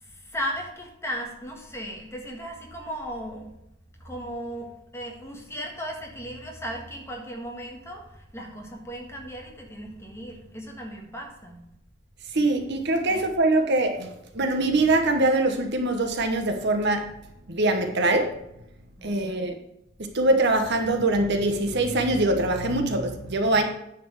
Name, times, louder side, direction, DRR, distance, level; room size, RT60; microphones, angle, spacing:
voice 1, 0.0-3.5 4.0-11.6 13.1-13.2 19.0-19.5, equal, 10° left, 0 dB, 1.5 m, -36 dB
voice 2, 12.3-17.1 17.5-18.3 19.0-19.6 20.0-23.6, right 2 dB, 55° right, 5 dB, 1.0 m, -23 dB
9.5 x 4.3 x 7.2 m, 0.81 s
head